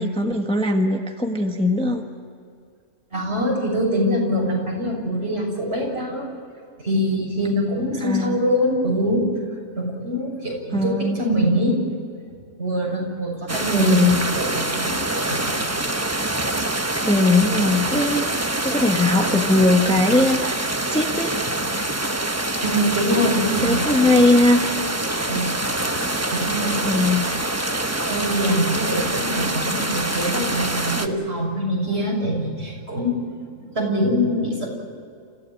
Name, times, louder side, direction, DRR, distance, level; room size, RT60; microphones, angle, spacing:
voice 1, 0.0-2.0 8.0-8.4 10.7-11.2 13.7-14.2 17.0-21.4 23.6-24.6 26.8-27.2, left 2 dB, 5° left, 3 dB, 1.3 m, -20 dB
voice 2, 3.1-6.3 6.8-9.3 9.8-11.8 12.6-15.0 15.2-15.6 22.6-23.9 25.3-26.0 26.3-27.2 28.1-33.1 33.6-34.7, equal, 55° right, -1 dB, 6.9 m, -24 dB
sound 1, 13.5-31.1, right 1 dB, 15° right, 1.1 m, -25 dB
28.5 x 15.5 x 9.0 m, 2.3 s
omnidirectional pair, 1.3 m